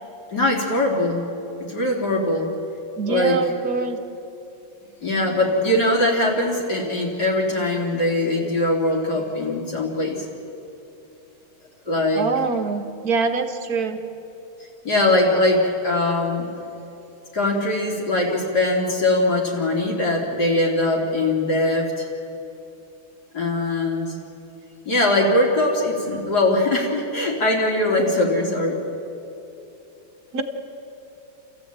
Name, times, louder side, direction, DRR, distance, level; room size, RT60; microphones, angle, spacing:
voice 1, 0.3-1.3 1.6-2.5 3.1-3.4 5.0-10.3 11.9-12.3 14.8-16.5 17.3-22.1 23.3-24.1 24.9-28.8, left 1 dB, 45° left, -2 dB, 3.9 m, -21 dB
voice 2, 3.0-4.0 12.1-14.0 30.3-30.4, right 4 dB, 45° right, 6 dB, 1.7 m, -24 dB
29.0 x 15.0 x 8.7 m, 3.0 s
omnidirectional pair, 2.4 m